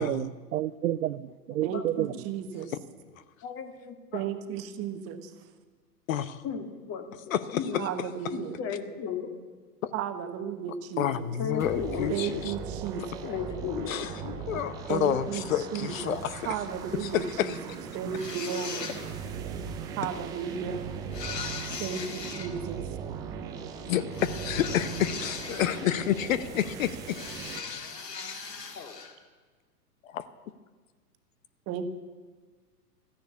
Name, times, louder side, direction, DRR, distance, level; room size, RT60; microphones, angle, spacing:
voice 1, 0.0-2.3, right 13 dB, 65° right, 17 dB, 0.6 m, -30 dB
voice 2, 1.6-2.7 4.1-5.5 7.8-8.6 9.9-11.3 12.1-13.0 14.9-16.2 16.4-17.6 17.9-18.9 20.0-20.9 21.8-22.8 31.7-31.9, right 8 dB, 30° right, 8 dB, 1.2 m, -34 dB
voice 3, 3.4-4.2 6.4-7.9 8.3-9.3 11.4-12.4 13.0-14.6, left 6 dB, 30° left, 6 dB, 2.0 m, -35 dB
voice 4, 6.1-6.4 7.3-7.6 9.8-9.9 11.0-12.5 13.9-14.1 14.5-16.5 17.4-17.5 23.9-27.2 30.1-30.2, left 11 dB, 55° left, 14 dB, 0.9 m, -29 dB
sound 1, 11.6-27.6, right 6 dB, 10° right, 0.4 m, -39 dB
sound 2, 18.1-19.3 21.1-22.5 24.1-26.2 27.1-29.2, left 5 dB, 85° left, 2.2 m, -39 dB
14.5 x 10.5 x 8.4 m, 1.4 s
hypercardioid pair, 120°, 48 cm